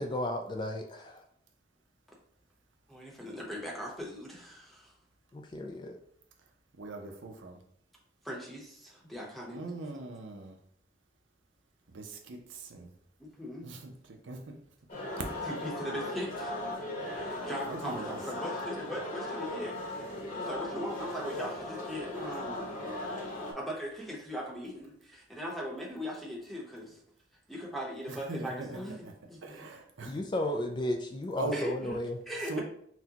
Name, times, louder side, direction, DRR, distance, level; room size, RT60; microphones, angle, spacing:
voice 1, 0.0-1.0 5.3-6.0 30.0-32.2, left 1 dB, 25° left, 3 dB, 0.3 m, -34 dB
voice 2, 2.9-4.9 8.2-9.6 13.2-13.7 15.5-16.5 17.1-22.9 23.5-27.0 27.5-28.9 29.3-29.7 31.5-31.9 32.3-32.6, equal, ahead, -3 dB, 0.9 m, -39 dB
voice 3, 6.8-7.6 9.5-10.6 11.9-12.9 13.6-14.6 15.3-15.4 17.3-18.1 28.1-29.1 29.4-30.2 31.4-31.6 32.5-32.6, right 3 dB, 80° right, 3 dB, 0.7 m, -41 dB
sound 1, 14.9-23.5, left 1 dB, 45° left, 1.0 m, -38 dB
6.0 x 2.2 x 2.9 m, 0.69 s
head